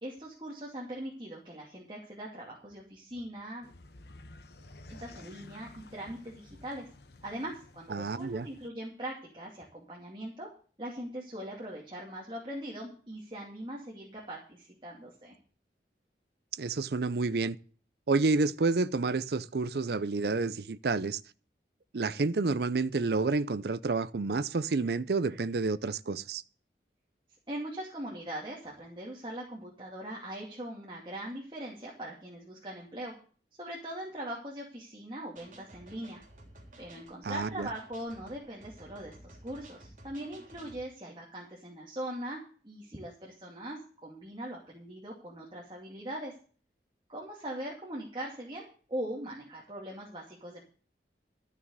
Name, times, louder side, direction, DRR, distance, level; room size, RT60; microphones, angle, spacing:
voice 1, 0.0-3.7 4.9-6.9 7.2-10.5 10.8-15.3 27.5-33.1 33.6-36.2 36.8-46.3 47.1-50.6, right 1 dB, 25° right, 2.4 m, -41 dB
sound 1, 3.6-8.7, left 2 dB, 65° left, 1.1 m, -52 dB
voice 2, 7.9-8.5 16.6-17.6 18.1-21.2 21.9-26.4 37.2-37.7, right 3 dB, 65° right, 0.5 m, -29 dB
sound 2, 35.4-40.8, right 1 dB, 45° right, 3.4 m, -53 dB
13.0 x 6.4 x 8.0 m
head